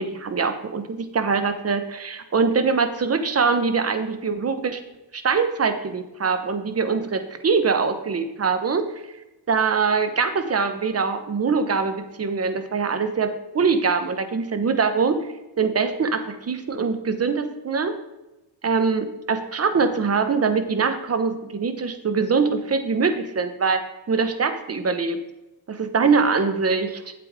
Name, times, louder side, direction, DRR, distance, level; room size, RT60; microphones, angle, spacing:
voice 1, 0.0-4.8 5.1-9.0 9.5-15.2 15.6-17.9 18.6-23.8 24.1-25.2 25.7-27.1, right 5 dB, 35° right, 9 dB, 1.1 m, -23 dB
8.4 x 8.0 x 3.7 m, 0.98 s
cardioid pair, 80°, 45 cm